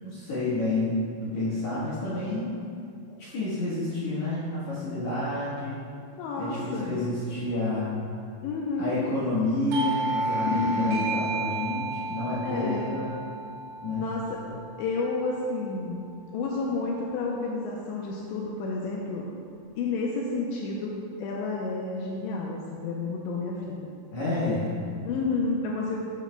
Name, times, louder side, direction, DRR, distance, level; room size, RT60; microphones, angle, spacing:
voice 1, 0.0-2.5 3.2-5.8 6.4-7.9 8.8-13.1 13.8-14.1 24.1-24.7, left 2 dB, 60° left, -10 dB, 2.0 m, -29 dB
voice 2, 6.1-7.0 8.4-9.1 10.5-11.0 12.4-13.0 14.0-14.4 14.8-16.0 16.3-19.3 19.8-20.9 21.2-23.9 25.1-26.1, left 3 dB, 80° left, -2 dB, 2.9 m, -30 dB
Doorbell, 9.7-15.0, right 2 dB, 75° right, 2.9 m, -32 dB
14.0 x 8.2 x 2.3 m, 2.4 s
omnidirectional pair, 5.3 m